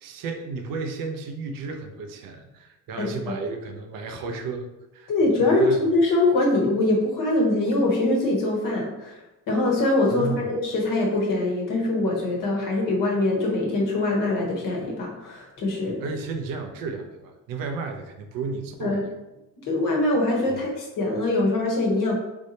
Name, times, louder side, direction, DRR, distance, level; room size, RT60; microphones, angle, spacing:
voice 1, 0.0-4.7 4.9-5.1 5.4-5.9 10.1-10.5 16.0-19.1 20.5-20.6, right 4 dB, 90° right, 5 dB, 0.6 m, -33 dB
voice 2, 3.0-3.4 5.1-9.2 9.5-16.0 18.8-19.0 19.7-22.1, left 2 dB, 75° left, -1 dB, 1.1 m, -23 dB
3.4 x 3.0 x 2.7 m, 0.99 s
cardioid pair, 95°, 33 cm